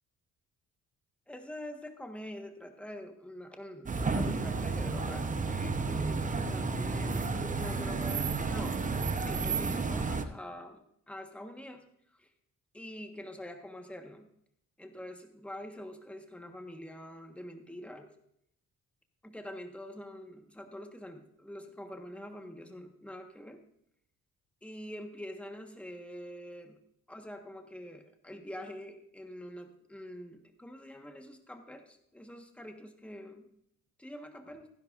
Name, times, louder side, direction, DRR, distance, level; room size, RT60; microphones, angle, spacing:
voice 1, 1.3-8.8 9.2-11.8 12.1-12.3 12.7-14.3 14.8-18.1 19.2-23.6 24.6-26.8 27.1-33.5 34.0-34.7, equal, 5° left, 5 dB, 1.4 m, -45 dB
sound 1, 3.9-10.3, right 4 dB, 25° right, 0.9 m, -32 dB
15.0 x 10.5 x 2.6 m, 0.74 s
cardioid pair, 90°, 30 cm